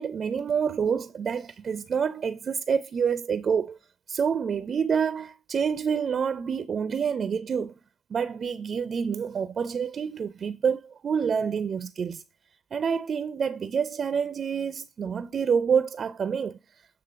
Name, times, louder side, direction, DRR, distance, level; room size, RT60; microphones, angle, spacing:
voice 1, 0.0-3.8 4.1-7.7 8.1-12.2 12.7-16.6, right 6 dB, 45° right, 0.4 m, -27 dB
8.7 x 3.3 x 5.8 m
hypercardioid pair, 55°, 0 cm